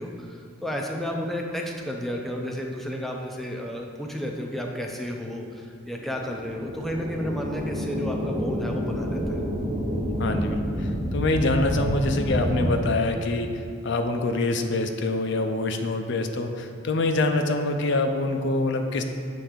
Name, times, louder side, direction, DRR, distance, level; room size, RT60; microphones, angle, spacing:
voice 1, 0.0-9.4, equal, ahead, 0 dB, 0.5 m, -32 dB
sound 1, 5.9-12.7, equal, 25° right, 0.9 m, -29 dB
voice 2, 10.2-19.0, left 2 dB, 60° left, 6 dB, 0.5 m, -25 dB
7.3 x 3.4 x 5.0 m, 2.3 s
head